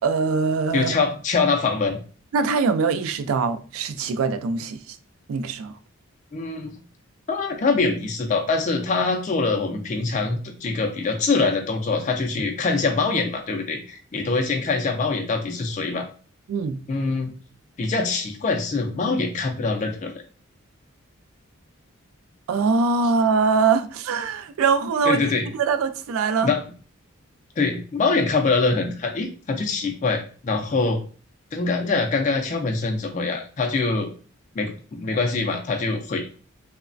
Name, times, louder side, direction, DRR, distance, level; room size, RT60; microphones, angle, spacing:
voice 1, 0.0-1.0 2.3-5.0 5.3-5.8 16.5-16.8 22.5-25.2 25.6-26.5, right 5 dB, 75° right, 0.3 m, -22 dB
voice 2, 0.7-2.0 6.3-6.8 7.3-16.0 16.9-17.3 17.8-20.1 25.1-25.5 26.4-26.6 27.6-31.0 31.5-34.1 34.6-36.3, left 4 dB, 35° left, 0.3 m, -24 dB
3.1 x 2.1 x 2.4 m
head